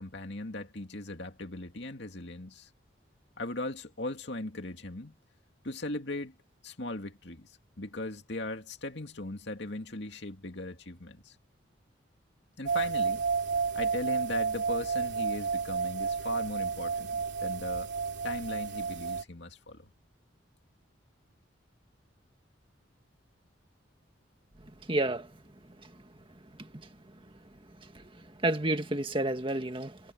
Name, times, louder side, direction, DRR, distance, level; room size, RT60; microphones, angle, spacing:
voice 1, 0.0-2.7 3.4-5.2 5.6-6.3 6.6-11.4 12.6-13.3 13.7-17.2 17.4-17.9 18.2-19.9, left 2 dB, 60° left, 2.4 m, -38 dB
sound 1, 12.7-19.2, right 5 dB, 60° right, 3.4 m, -31 dB
voice 2, 24.9-25.3 25.8-25.9 26.6-26.7 27.8-28.1 28.4-30.0, right 1 dB, 25° right, 1.9 m, -30 dB
head